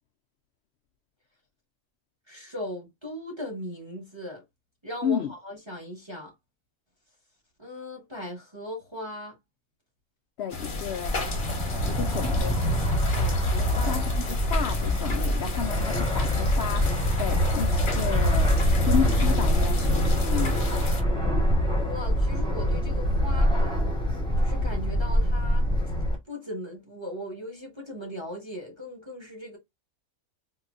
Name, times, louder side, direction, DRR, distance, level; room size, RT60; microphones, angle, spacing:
voice 1, 2.3-4.4 4.8-6.3 7.6-9.3 13.1-13.9 14.3-14.6 21.8-23.9 24.4-25.7 26.3-29.6, left 1 dB, 20° right, 1.1 m, -38 dB
voice 2, 5.0-5.3 10.4-11.1 11.9-12.6 13.7-18.5 18.8-20.6, left 8 dB, 65° left, 0.6 m, -32 dB
sound 1, 10.5-21.0, left 4 dB, 40° left, 0.9 m, -34 dB
Fixed-wing aircraft airplane, 11.1-26.2, equal, 5° left, 0.9 m, -24 dB
3.8 x 2.7 x 2.4 m
omnidirectional pair, 1.5 m